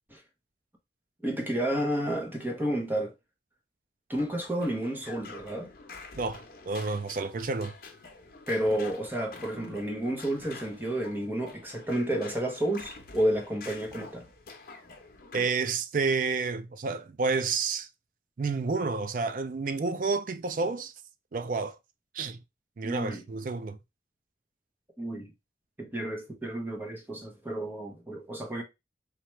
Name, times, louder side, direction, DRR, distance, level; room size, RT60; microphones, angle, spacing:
voice 1, 1.2-3.1 4.1-5.7 8.5-14.3 22.8-23.2 25.0-25.3 25.8-28.6, right 1 dB, 10° right, 0.7 m, -31 dB
sound 1, 4.1-15.5, left 3 dB, 50° left, 0.8 m, -47 dB
voice 2, 6.2-7.7 15.3-17.9 18.4-20.9 21.3-21.8 22.1-22.4 22.8-23.8, right 4 dB, 45° right, 0.4 m, -30 dB
4.3 x 2.4 x 3.1 m
head